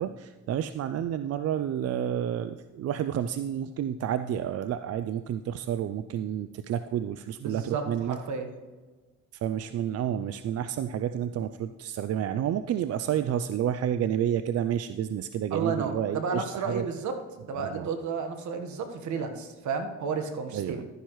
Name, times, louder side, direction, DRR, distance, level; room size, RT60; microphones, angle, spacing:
voice 1, 0.0-8.2 9.4-16.8 17.6-17.9 20.5-20.8, right 10 dB, 55° right, 11 dB, 0.4 m, -30 dB
voice 2, 7.4-8.5 15.5-17.1 17.4-20.8, right 5 dB, 70° right, 7 dB, 1.3 m, -32 dB
12.0 x 10.0 x 3.1 m, 1.3 s
cardioid pair, 90°, 30 cm